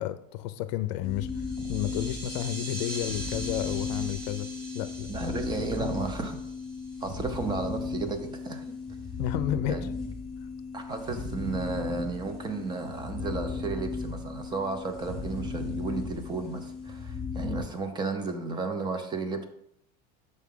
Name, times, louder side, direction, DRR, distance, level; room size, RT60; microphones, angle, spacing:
voice 1, 0.0-4.5 4.7-5.1 5.8-5.9 9.2-9.9, left 13 dB, 85° left, 12 dB, 0.4 m, -31 dB
sound 1, 1.0-17.6, left 4 dB, 5° left, 1.0 m, -36 dB
sound 2, 1.2-7.3, right 1 dB, 80° right, 1.9 m, -42 dB
voice 2, 5.1-6.4 7.0-8.7 9.6-9.9 10.7-19.4, right 4 dB, 20° right, 8 dB, 0.6 m, -33 dB
6.5 x 4.7 x 3.7 m, 0.76 s
supercardioid pair, 145°, 21 cm